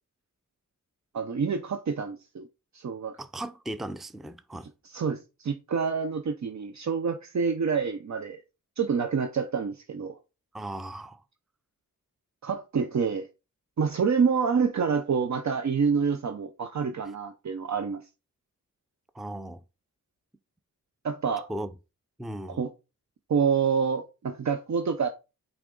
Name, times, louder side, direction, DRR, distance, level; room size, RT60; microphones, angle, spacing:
voice 1, 1.1-2.5 2.7-3.2 4.9-8.4 8.8-10.1 12.4-13.3 13.8-18.0 21.0-21.5 22.6-22.7 23.3-25.1, right 6 dB, 60° right, 0.6 m, -27 dB
voice 2, 3.2-4.7 10.5-11.2 19.1-19.6 21.5-21.7 22.2-22.6, right 1 dB, ahead, 0.4 m, -37 dB
8.4 x 3.5 x 3.8 m
wide cardioid pair, 110°, 32 cm